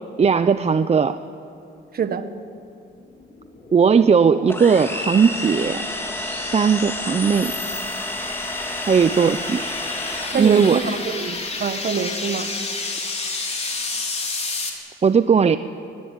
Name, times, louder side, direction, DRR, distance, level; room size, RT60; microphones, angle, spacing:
voice 1, 0.2-1.2 3.7-5.8 6.4-7.5 8.9-9.6 10.3-10.8 15.0-15.6, right 6 dB, 35° right, 11 dB, 0.7 m, -17 dB
voice 2, 1.9-2.3 10.3-12.5, right 6 dB, 50° right, 10 dB, 1.7 m, -25 dB
sound 1, 3.0-14.7, left 3 dB, 35° left, 4.5 m, -32 dB
sound 2, 4.5-11.2, left 1 dB, 10° left, 4.2 m, -30 dB
22.5 x 21.0 x 9.8 m, 2.6 s
cardioid pair, 90°, 20 cm